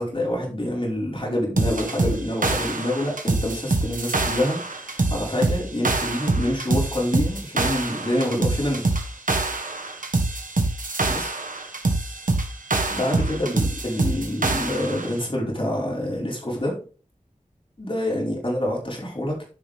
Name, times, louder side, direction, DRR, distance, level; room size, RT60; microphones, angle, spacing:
voice 1, 0.0-8.8 11.1-11.3 12.9-16.7 17.8-19.6, left 1 dB, 40° left, -3 dB, 5.0 m, -26 dB
sound 1, 1.6-15.1, right 2 dB, 90° right, 1.5 m, -25 dB
10.5 x 5.9 x 3.6 m, 0.37 s
wide cardioid pair, 65°, 13 cm